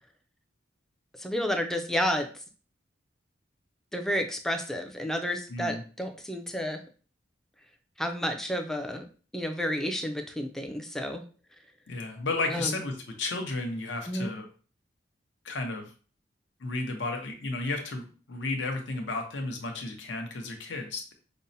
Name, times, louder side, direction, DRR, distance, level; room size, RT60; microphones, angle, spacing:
voice 1, 1.2-2.3 3.9-6.8 8.0-9.0 9.3-11.2 12.5-12.7 14.1-14.3, equal, ahead, 5 dB, 0.3 m, -31 dB
voice 2, 5.5-5.8 11.9-14.5 15.4-15.9 16.6-21.1, left 3 dB, 75° left, 4 dB, 0.7 m, -33 dB
5.3 x 2.0 x 2.6 m, 0.39 s
head